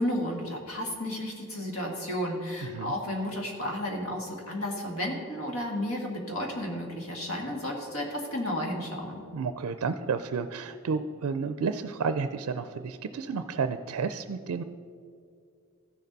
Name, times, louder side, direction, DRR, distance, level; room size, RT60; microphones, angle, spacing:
voice 1, 0.0-9.2, left 1 dB, 75° left, 1 dB, 1.8 m, -32 dB
voice 2, 2.6-2.9 9.3-14.6, right 5 dB, 85° right, 10 dB, 0.4 m, -31 dB
14.5 x 6.7 x 4.0 m, 2.3 s
head